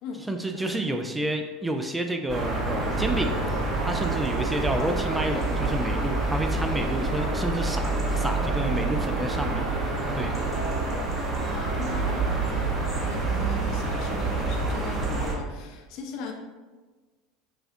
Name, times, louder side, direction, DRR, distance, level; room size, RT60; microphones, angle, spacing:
voice 1, 0.3-3.3 3.8-9.6 10.1-10.4, right 1 dB, 10° right, 5 dB, 0.3 m, -29 dB
sound 1, 2.3-15.4, right 3 dB, 35° right, 0.8 m, -27 dB
voice 2, 11.4-16.3, left 4 dB, 60° left, 3 dB, 0.5 m, -39 dB
4.9 x 2.3 x 2.5 m, 1.3 s
hypercardioid pair, 90°, 0 cm